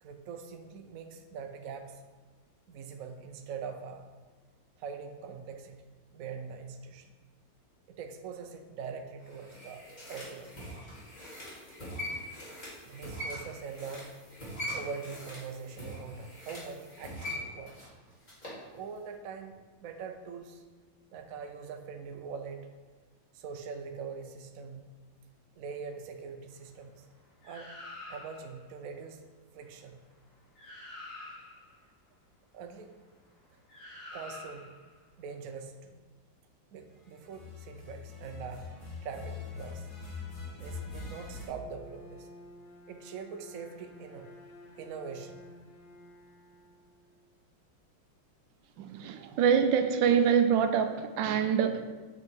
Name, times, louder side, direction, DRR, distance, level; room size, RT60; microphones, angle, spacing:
voice 1, 0.0-2.0 2.7-4.0 4.8-5.8 6.1-7.1 7.9-10.5 12.8-14.1 14.7-17.8 18.7-20.6 21.1-22.6 23.3-24.9 25.6-26.9 27.4-27.7 28.1-29.2 29.5-30.0 32.5-32.9 34.1-34.7 35.2-36.0 36.7-38.7 39.0-39.9 40.6-42.3 42.9-44.3 44.8-45.4 49.0-49.4, right 5 dB, 60° right, 5 dB, 0.9 m, -43 dB
sound 1, 9.2-18.6 19.0-19.1, equal, 20° left, 2.5 m, -42 dB
sound 2, 27.4-28.6 30.2-30.3 30.6-31.7 33.7-34.9 37.2-41.5, left 4 dB, 40° left, 3.1 m, -44 dB
Bowed string instrument, 41.4-47.4, left 1 dB, 75° left, 2.3 m, -53 dB
voice 2, 48.8-52.0, right 7 dB, 75° right, 8 dB, 1.2 m, -25 dB
7.9 x 6.0 x 4.5 m, 1.4 s
omnidirectional pair, 2.1 m